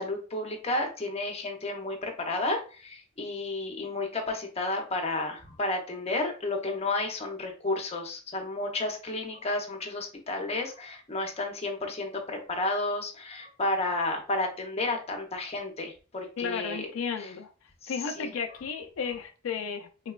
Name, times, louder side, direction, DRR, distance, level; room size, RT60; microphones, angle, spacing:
voice 1, 0.0-16.9 17.2-17.3 17.8-18.3, left 2 dB, 30° left, 2 dB, 0.7 m, -32 dB
voice 2, 16.4-17.5 17.9-20.1, left 6 dB, 90° left, 5 dB, 0.4 m, -34 dB
3.9 x 2.2 x 2.3 m, 0.35 s
head